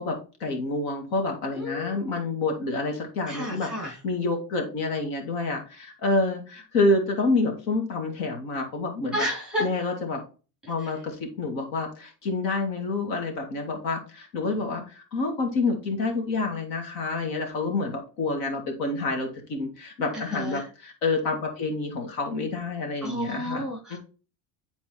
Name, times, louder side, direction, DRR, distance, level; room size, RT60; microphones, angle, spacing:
voice 1, 0.0-9.3 9.6-10.2 10.7-24.0, left 3 dB, 65° left, 3 dB, 2.2 m, -28 dB
voice 2, 1.5-2.1 3.3-4.0 9.1-9.7 10.8-10.9 20.1-20.7 23.0-24.0, equal, ahead, -1 dB, 2.8 m, -31 dB
10.5 x 4.3 x 3.0 m, 0.34 s
cardioid pair, 175°, 45 cm